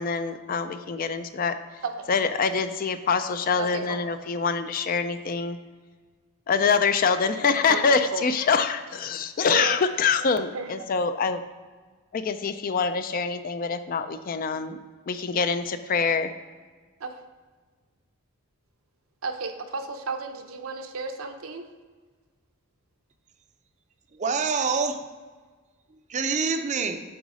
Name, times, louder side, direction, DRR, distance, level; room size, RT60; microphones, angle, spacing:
voice 1, 0.0-1.6 2.1-5.6 6.5-11.4 12.1-14.8 15.1-16.3, left 5 dB, 40° left, 10 dB, 0.4 m, -25 dB
voice 2, 3.6-4.0 7.7-8.2 9.5-9.8 10.5-10.7 17.0-17.1 19.2-21.6, right 3 dB, 75° right, 5 dB, 0.7 m, -33 dB
voice 3, 24.1-25.0 25.9-27.0, right 5 dB, 35° right, 7 dB, 0.5 m, -26 dB
7.9 x 4.0 x 4.8 m, 1.4 s
head